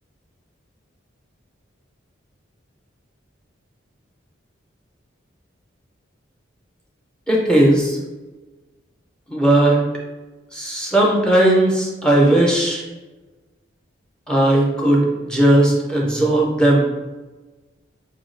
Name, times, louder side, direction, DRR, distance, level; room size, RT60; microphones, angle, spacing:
voice 1, 7.3-8.0 9.3-9.8 10.5-12.8 14.3-17.0, right 1 dB, 5° left, -3 dB, 0.5 m, -17 dB
4.5 x 2.3 x 3.2 m, 1.2 s
head